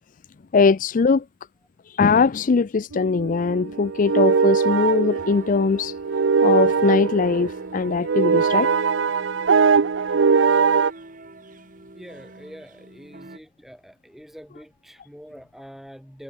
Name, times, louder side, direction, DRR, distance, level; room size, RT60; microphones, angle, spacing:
voice 1, 0.5-1.3 1.9-6.0 6.2-8.7, left 4 dB, 45° left, 0.4 m, -21 dB
sound 1, 2.9-10.9, right 5 dB, 75° right, 0.6 m, -21 dB
sound 2, 5.1-13.4, right 2 dB, 45° right, 3.0 m, -45 dB
voice 2, 11.9-16.2, equal, ahead, 1.9 m, -44 dB
head